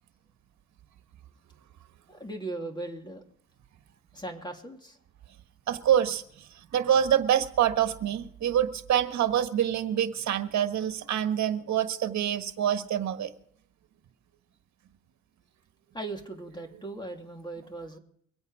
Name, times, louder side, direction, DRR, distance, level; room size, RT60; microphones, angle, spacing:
voice 1, 2.1-3.2 4.1-5.0 15.9-18.0, right 2 dB, 15° left, 4 dB, 2.8 m, -38 dB
voice 2, 5.7-13.3, right 10 dB, 65° right, 9 dB, 1.4 m, -26 dB
23.5 x 8.7 x 4.9 m, 0.65 s
cardioid pair, 90°, 30 cm